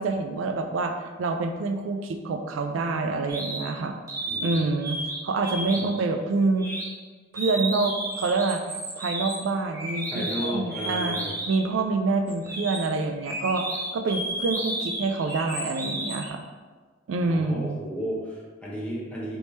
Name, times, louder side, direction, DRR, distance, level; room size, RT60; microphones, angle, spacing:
voice 1, 0.0-3.9 4.4-6.7 7.3-8.6 9.0-11.2 11.5-13.6 13.9-16.4 17.1-17.8, right 3 dB, 85° right, 6 dB, 0.3 m, -27 dB
sound 1, 3.3-3.6 4.1-5.2 5.4-6.0 6.6-6.8 7.3-11.7 12.3-16.3, right 1 dB, 15° right, 1.0 m, -32 dB
voice 2, 4.3-4.6 5.8-5.9 10.1-11.3 17.2-19.4, equal, 5° left, -6 dB, 0.9 m, -33 dB
3.4 x 3.1 x 4.1 m, 1.4 s
head